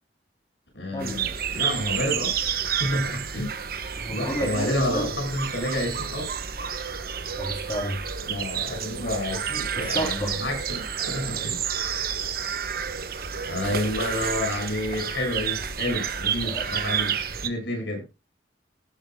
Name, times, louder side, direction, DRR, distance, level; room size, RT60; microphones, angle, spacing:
voice 1, 0.7-3.5 4.1-6.3 8.3-11.6 13.4-18.0, left 1 dB, 80° left, 2 dB, 7.1 m, -30 dB
sound 1, 1.0-17.5, right 7 dB, 55° right, 1.1 m, -30 dB
voice 2, 4.0-5.2 7.4-8.0 9.8-10.3 16.4-16.6, equal, 25° left, 1 dB, 3.3 m, -30 dB
18.5 x 10.5 x 2.3 m, 0.27 s
head